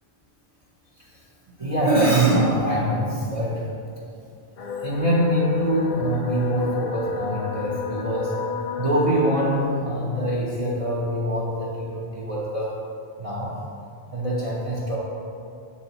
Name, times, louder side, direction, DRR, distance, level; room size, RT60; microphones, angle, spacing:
voice 1, 1.6-3.7 4.8-8.4 8.8-12.8 13.2-13.6 14.1-15.0, right 1 dB, 35° right, -5 dB, 0.8 m, -24 dB
sound 1, 4.6-9.6, left 6 dB, 50° left, 0.7 m, -31 dB
7.7 x 7.0 x 3.0 m, 2.6 s
omnidirectional pair, 1.1 m